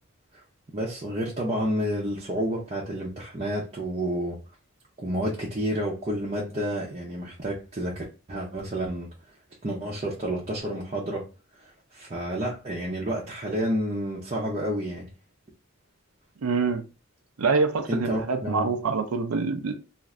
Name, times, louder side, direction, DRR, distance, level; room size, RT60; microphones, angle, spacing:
voice 1, 0.7-4.4 5.0-9.1 9.6-11.3 11.6-15.1 17.9-18.7, equal, 30° right, 0.6 m, -30 dB
voice 2, 16.4-16.8 17.4-19.7, right 4 dB, 85° right, 0.5 m, -25 dB
2.5 x 2.4 x 3.1 m
head